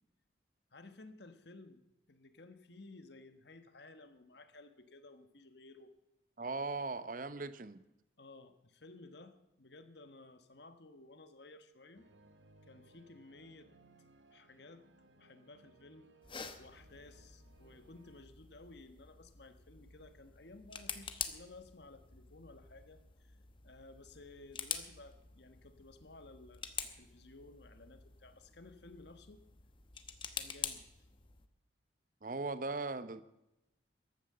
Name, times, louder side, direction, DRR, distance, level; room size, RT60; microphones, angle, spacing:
voice 1, 0.7-1.8 2.1-5.9 8.2-12.1 12.7-13.7 14.3-16.1 16.6-23.4 23.6-26.6 27.0-29.4 30.3-30.8, left 2 dB, 60° left, 9 dB, 1.4 m, -56 dB
voice 2, 6.4-7.8 32.2-33.2, right 3 dB, 45° right, 14 dB, 0.7 m, -39 dB
sound 1, 11.9-18.2, right 2 dB, 70° right, 1.1 m, -65 dB
sound 2, 16.2-31.5, left 7 dB, 25° left, 1.0 m, -47 dB
14.5 x 11.0 x 6.7 m, 0.93 s
head